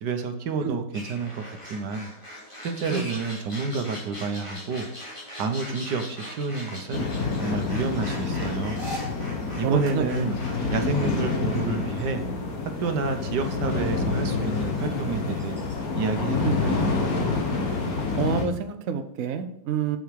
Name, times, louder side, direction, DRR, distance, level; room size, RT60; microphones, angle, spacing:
voice 1, 0.0-2.1 2.6-4.9 5.4-7.1 7.4-8.8 9.6-10.3 10.7-12.2 12.8-15.6 16.0-16.9, right 4 dB, 80° right, 7 dB, 1.6 m, -29 dB
sound 1, 0.9-17.3, equal, 15° left, 2.9 m, -42 dB
sound 2, 6.9-18.5, left 4 dB, 60° left, 1.9 m, -28 dB
voice 2, 9.5-10.1 16.4-16.6 18.2-20.0, right 7 dB, 60° right, 8 dB, 1.0 m, -28 dB
7.8 x 7.0 x 4.8 m, 0.69 s
omnidirectional pair, 1.8 m